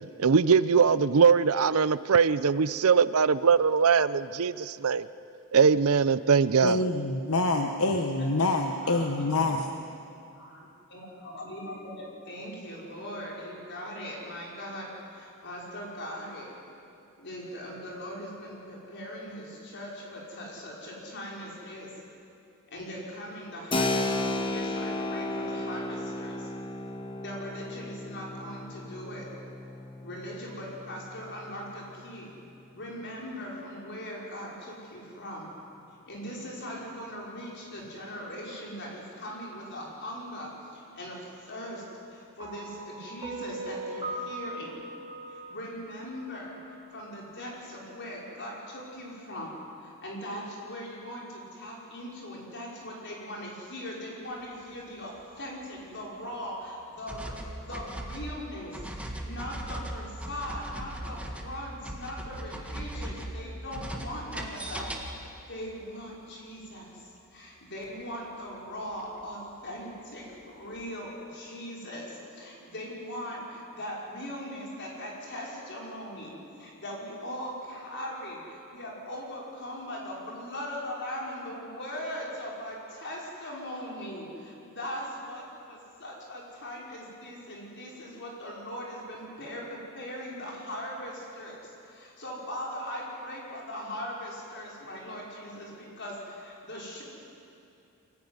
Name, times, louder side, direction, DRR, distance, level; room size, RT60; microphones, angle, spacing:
voice 1, 0.2-5.0 5.5-6.8, right 6 dB, 70° right, 16 dB, 0.6 m, -21 dB
voice 2, 6.6-9.7, left 2 dB, 70° left, 4 dB, 1.1 m, -26 dB
voice 3, 8.8-9.3 10.3-10.6 10.9-16.5 17.2-21.9 22.7-26.5 27.2-29.3 30.0-32.3 32.7-35.5 36.1-44.8 45.3-49.5 49.8-64.9 65.2-97.0, equal, 55° left, -3 dB, 5.4 m, -40 dB
Keyboard (musical), 23.7-32.1, left 2 dB, 25° left, 1.2 m, -34 dB
sound 1, 42.4-46.7, right 2 dB, 20° right, 2.9 m, -39 dB
sound 2, 57.1-65.4 69.0-69.1 70.8-70.9, right 1 dB, 5° right, 1.8 m, -38 dB
23.5 x 15.5 x 9.7 m, 2.6 s
head